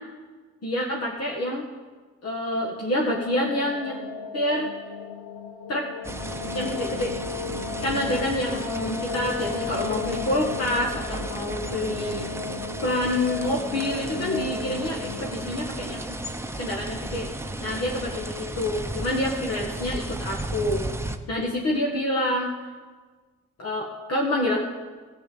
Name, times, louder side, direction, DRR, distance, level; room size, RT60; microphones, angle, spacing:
voice 1, 0.6-1.7 2.2-4.0 4.3-4.7 5.7-5.9 6.5-7.1 7.8-12.3 12.8-16.1 16.6-17.3 17.6-20.9 21.3-22.5 23.6-24.7, left 1 dB, 55° left, -2 dB, 1.9 m, -27 dB
sound 1, 2.7-17.6, left 6 dB, 85° left, 1.1 m, -36 dB
sound 2, 6.0-21.2, right 1 dB, 10° right, 0.9 m, -34 dB
14.5 x 7.4 x 8.0 m, 1.4 s
cardioid pair, 90°, 30 cm